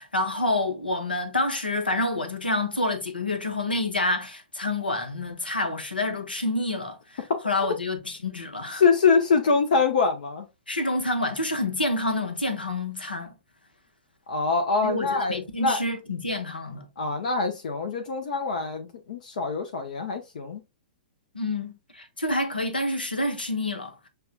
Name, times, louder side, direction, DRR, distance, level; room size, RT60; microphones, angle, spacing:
voice 1, 0.0-8.8 10.7-13.3 14.8-16.9 21.3-24.1, left 2 dB, 85° left, 0.9 m, -28 dB
voice 2, 8.8-10.5 14.3-15.8 17.0-20.6, left 4 dB, 55° left, 0.6 m, -24 dB
6.5 x 2.3 x 2.4 m
figure-of-eight pair, 110°, 5 cm